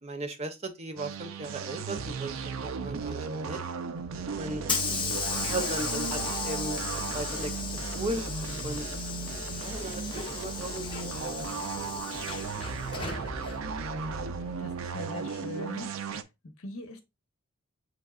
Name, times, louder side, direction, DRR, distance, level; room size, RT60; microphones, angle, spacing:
voice 1, 0.0-3.6 4.4-4.6 5.3-7.6 7.9-8.3 8.6-8.8 9.5-11.4 11.8-12.0, right 1 dB, 30° right, 0.6 m, -37 dB
sound 1, 1.0-16.2, right 5 dB, 75° right, 0.5 m, -36 dB
Hiss / Sliding door, 4.0-14.8, left 4 dB, 25° left, 0.7 m, -35 dB
voice 2, 14.6-15.9 16.2-17.0, left 2 dB, 80° left, 0.9 m, -41 dB
6.6 x 3.3 x 2.4 m
head